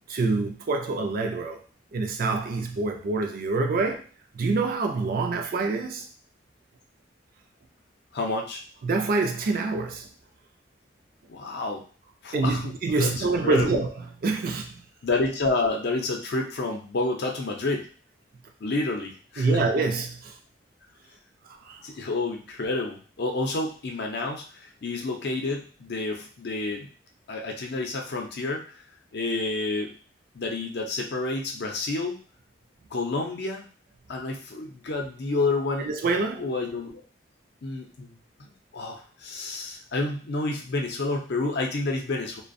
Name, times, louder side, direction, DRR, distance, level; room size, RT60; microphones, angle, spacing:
voice 1, 0.0-1.6 1.9-4.0 4.3-6.1 8.8-10.1 12.3-13.9 14.2-14.7 19.4-20.3 21.6-21.8 35.9-36.5, right 3 dB, 50° right, 0.4 m, -26 dB
voice 2, 8.1-8.6 11.3-11.8 12.2-12.7 13.0-13.8 15.0-17.9 18.6-19.6 21.8-26.9 27.3-28.8 29.1-29.9 30.3-32.2 32.9-33.7 34.1-35.9 36.4-37.0 37.6-42.4, left 2 dB, 60° left, 0.5 m, -29 dB
2.4 x 2.1 x 2.5 m
head